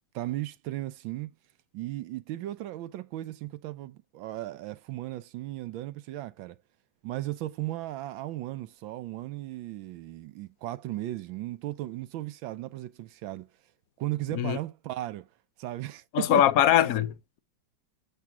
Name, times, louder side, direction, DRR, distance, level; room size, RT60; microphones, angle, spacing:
voice 1, 0.1-1.3 1.7-6.6 7.0-13.5 14.0-15.3 15.6-16.5, right 15 dB, 80° right, 1.4 m, -36 dB
voice 2, 16.1-17.4, left 11 dB, 65° left, 0.9 m, -22 dB
7.6 x 3.3 x 5.9 m
omnidirectional pair, 2.2 m